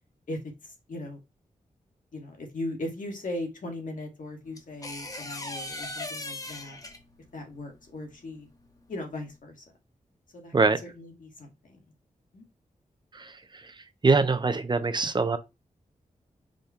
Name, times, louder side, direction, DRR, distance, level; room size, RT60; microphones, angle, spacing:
voice 1, 0.3-1.2 2.1-6.8 7.3-8.5 8.9-9.6 10.3-10.5 10.8-11.8 12.3-12.4, left 1 dB, 75° left, 1.6 m, -38 dB
sound 1, 4.6-7.3 9.0-9.2, left 2 dB, 25° left, 0.9 m, -38 dB
voice 2, 13.1-13.7 14.0-15.4, right 4 dB, 35° right, 0.5 m, -24 dB
5.1 x 2.2 x 4.2 m
wide cardioid pair, 85°, 14 cm